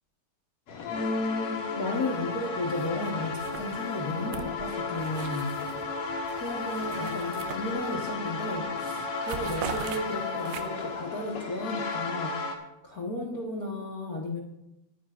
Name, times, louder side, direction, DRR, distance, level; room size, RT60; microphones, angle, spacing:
sound 1, 0.7-12.6, left 4 dB, 55° left, 1.7 m, -34 dB
voice 1, 0.9-6.0 6.4-12.4 12.8-14.4, left 1 dB, 75° left, -1 dB, 0.8 m, -33 dB
sound 2, 2.8-3.1 3.4-5.8 6.2-8.1 8.5-8.7 9.0-11.0, right 8 dB, 85° right, 2.7 m, -41 dB
21.5 x 9.4 x 2.5 m, 0.88 s
omnidirectional pair, 4.4 m